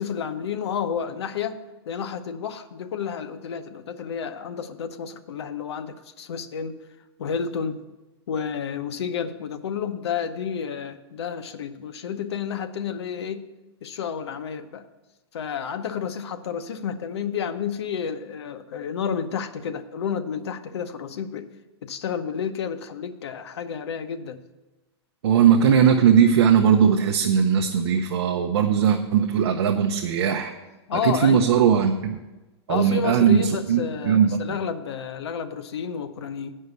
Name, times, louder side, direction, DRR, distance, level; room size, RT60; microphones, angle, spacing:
voice 1, 0.0-1.6 1.9-6.8 7.2-7.8 8.3-13.4 13.8-14.9 15.3-21.5 21.8-24.4 30.9-31.5 32.7-36.5, left 7 dB, 70° left, 9 dB, 0.8 m, -30 dB
voice 2, 25.2-30.5 30.9-32.2 32.7-34.6, right 8 dB, 65° right, 4 dB, 0.7 m, -19 dB
9.6 x 5.5 x 7.9 m, 1.1 s
supercardioid pair, 180°, 14 cm